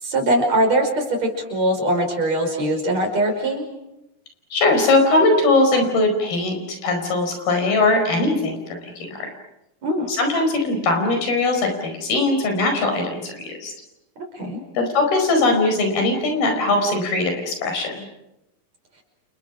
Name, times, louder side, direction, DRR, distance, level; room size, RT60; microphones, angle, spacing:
voice 1, 0.0-3.6 9.8-10.1 14.3-14.6, right 1 dB, 45° right, 3 dB, 6.5 m, -21 dB
voice 2, 4.5-6.6 6.8-9.3 10.1-13.3 13.6-13.7 14.7-18.0, left 2 dB, 80° left, 5 dB, 6.8 m, -20 dB
30.0 x 29.5 x 6.2 m, 0.91 s
omnidirectional pair, 4.3 m